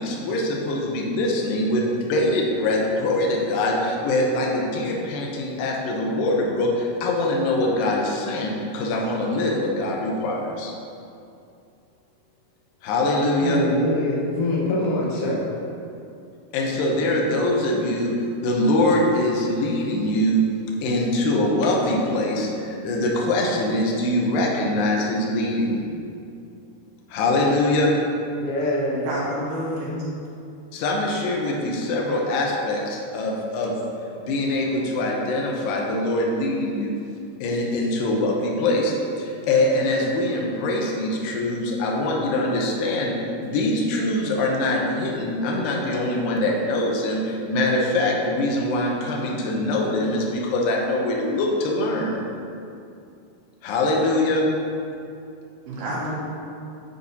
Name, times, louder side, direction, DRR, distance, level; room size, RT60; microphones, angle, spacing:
voice 1, 0.0-10.7 12.8-13.6 16.5-18.2 18.4-20.4 20.8-25.8 27.1-27.9 30.7-33.7 34.3-36.9 37.4-43.1 43.4-52.2 53.6-54.5, left 1 dB, 80° left, -1 dB, 2.5 m, -23 dB
voice 2, 13.4-15.5 28.4-29.1, left 2 dB, 60° left, -5 dB, 1.6 m, -24 dB
voice 3, 29.0-30.0 55.7-56.1, equal, 85° right, -6 dB, 3.3 m, -28 dB
9.4 x 4.1 x 4.2 m, 2.6 s
omnidirectional pair, 4.2 m